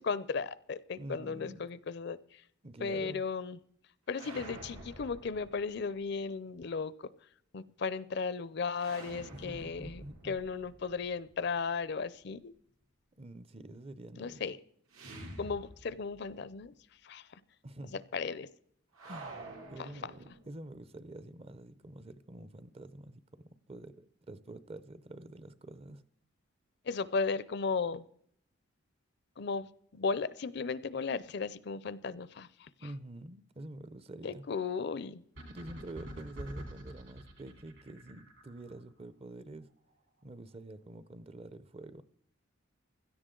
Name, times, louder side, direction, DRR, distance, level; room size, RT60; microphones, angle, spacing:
voice 1, 0.0-2.2 2.8-3.6 4.1-6.9 7.5-12.5 14.2-14.6 15.4-16.7 17.0-17.2 17.9-18.5 26.9-28.0 29.4-29.7 29.9-32.7 34.2-35.2, left 5 dB, 50° left, 18 dB, 0.5 m, -35 dB
voice 2, 1.0-1.6 2.6-3.2 9.3-10.4 13.2-14.4 17.6-18.0 19.0-26.0 32.8-34.4 35.4-39.7 40.2-42.0, right 1 dB, 30° right, 15 dB, 0.5 m, -47 dB
sound 1, 4.1-6.1 8.7-11.7 14.9-16.3 16.6-16.7 18.9-20.7, right 2 dB, 90° right, 2.9 m, -49 dB
sound 2, 35.4-38.8, right 1 dB, 65° right, 3.1 m, -46 dB
16.5 x 13.0 x 3.8 m, 0.65 s
head